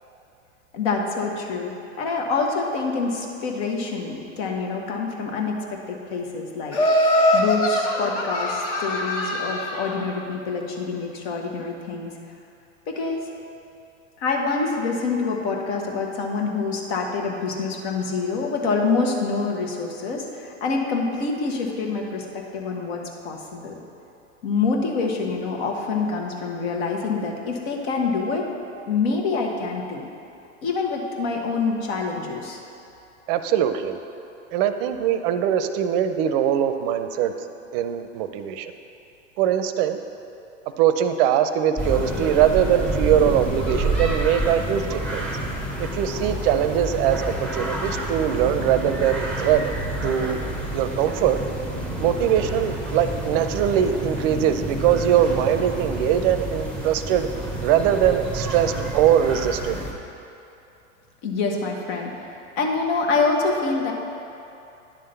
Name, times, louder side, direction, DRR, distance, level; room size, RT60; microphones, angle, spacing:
voice 1, 0.7-6.8 7.3-12.1 12.9-13.3 14.2-23.8 24.4-28.5 28.8-30.1 30.6-32.6 61.2-63.9, left 4 dB, 55° left, 1 dB, 1.4 m, -26 dB
Laughter, 6.7-9.9, left 1 dB, 35° left, 1.2 m, -22 dB
voice 2, 33.3-34.0 34.5-37.3 37.7-38.7 39.4-40.0 40.8-45.2 45.9-49.7 50.0-50.4 50.7-51.4 52.0-57.3 57.6-59.8, right 9 dB, 45° right, 9 dB, 0.6 m, -21 dB
sound 1, 41.8-59.9, right 1 dB, 5° left, 0.9 m, -29 dB
10.5 x 3.7 x 6.8 m, 2.8 s
hypercardioid pair, 120°, 38 cm